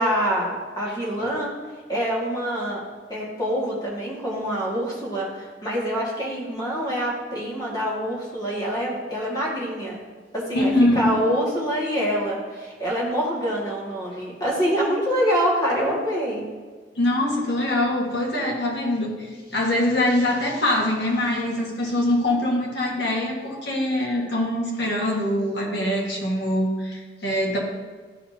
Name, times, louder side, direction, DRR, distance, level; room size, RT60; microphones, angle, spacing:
voice 1, 0.0-1.5 1.9-2.8 3.1-10.0 10.3-16.4, equal, 20° left, -5 dB, 1.9 m, -25 dB
voice 2, 10.5-11.2 17.0-27.6, left 1 dB, 80° left, -2 dB, 1.7 m, -23 dB
12.0 x 4.2 x 2.8 m, 1.4 s
head